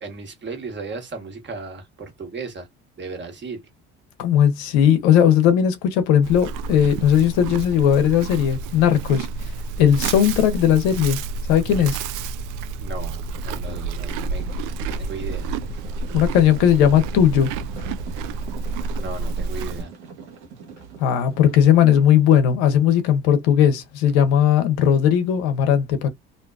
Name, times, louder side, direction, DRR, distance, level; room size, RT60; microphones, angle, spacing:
voice 1, 0.0-2.7 3.0-3.6 12.8-14.4 14.9-15.5 19.0-19.9, right 4 dB, 35° right, 1.3 m, -35 dB
voice 2, 4.2-9.3 9.8-11.2 11.5-12.0 16.1-17.5 21.0-26.1, left 9 dB, 80° left, 0.8 m, -17 dB
Livestock farm animals working animals, 6.2-19.8, right 4 dB, 65° right, 0.5 m, -30 dB
sound 1, 13.3-22.4, right 6 dB, 90° right, 1.0 m, -42 dB
2.6 x 2.2 x 2.3 m
hypercardioid pair, 65°, 33 cm